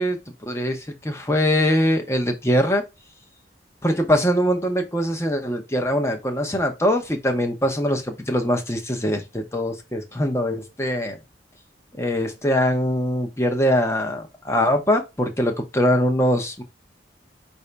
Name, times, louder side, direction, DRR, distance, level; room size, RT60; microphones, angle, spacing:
voice 1, 0.0-2.8 3.8-11.2 11.9-16.6, equal, 15° left, 0.9 m, -22 dB
5.5 x 2.7 x 3.3 m
head